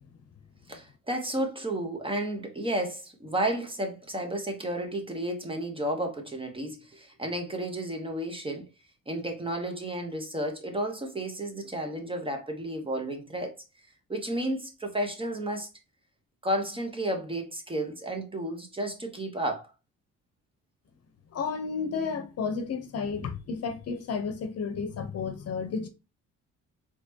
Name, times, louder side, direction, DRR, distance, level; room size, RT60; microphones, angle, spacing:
voice 1, 0.7-8.7 9.1-13.5 14.1-15.7 16.4-19.7, right 1 dB, 15° right, 1.1 m, -32 dB
voice 2, 21.3-25.9, left 5 dB, 55° left, 0.8 m, -32 dB
4.2 x 3.0 x 2.8 m
cardioid pair, 90°, 30 cm